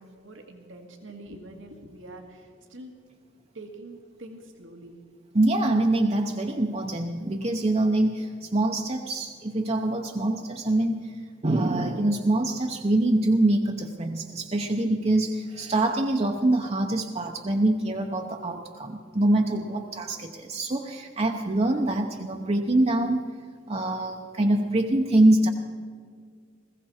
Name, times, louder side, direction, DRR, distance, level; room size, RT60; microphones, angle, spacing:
voice 1, 0.0-2.9 3.5-4.9, right 1 dB, 85° right, 3 dB, 1.9 m, -45 dB
voice 2, 5.3-23.2 23.7-25.5, right 1 dB, 35° right, 3 dB, 0.9 m, -24 dB
21.0 x 16.0 x 4.4 m, 2.1 s
head